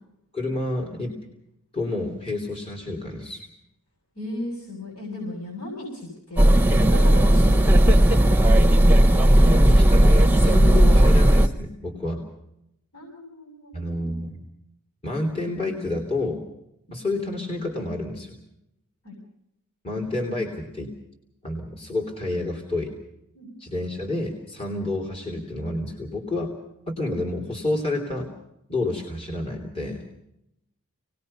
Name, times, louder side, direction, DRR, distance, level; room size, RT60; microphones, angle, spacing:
voice 1, 0.3-1.2 1.7-3.5 9.1-12.3 13.7-14.4 15.0-16.5 16.9-18.4 19.8-20.9 21.4-22.9 23.6-26.6 26.9-28.3 28.7-30.0, left 2 dB, 25° left, -2 dB, 3.2 m, -29 dB
voice 2, 4.2-8.0 12.9-14.2 19.0-19.2 23.3-23.5, left 1 dB, 80° left, -1 dB, 7.6 m, -36 dB
sound 1, 6.4-11.5, right 1 dB, 10° right, 1.0 m, -15 dB
28.0 x 19.5 x 5.5 m, 0.81 s
head